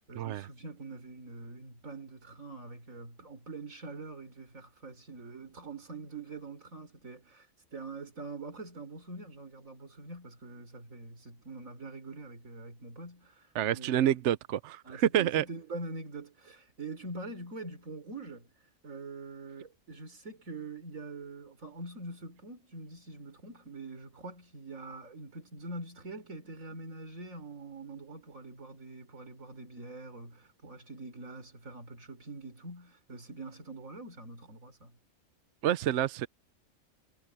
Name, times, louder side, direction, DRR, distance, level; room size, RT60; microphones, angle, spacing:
voice 1, 0.1-7.5 7.7-14.1 14.8-18.5 18.8-35.0, right 3 dB, 85° right, 3.9 m, -44 dB
voice 2, 13.5-15.4 35.6-36.3, right 11 dB, 70° right, 0.9 m, -28 dB
omnidirectional pair, 1.4 m